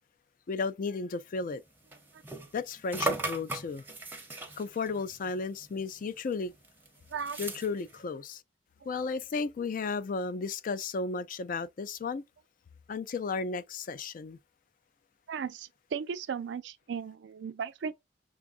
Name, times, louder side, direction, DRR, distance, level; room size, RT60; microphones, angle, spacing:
voice 1, 0.5-1.6 2.5-3.8 4.6-6.5 7.4-8.4 8.9-12.2 12.9-14.4, left 4 dB, 45° left, 0.3 m, -34 dB
sound 1, 1.4-6.0 6.3-8.0, right 2 dB, 10° right, 0.6 m, -38 dB
voice 2, 15.3-17.9, right 6 dB, 65° right, 0.4 m, -36 dB
6.0 x 2.3 x 2.4 m
head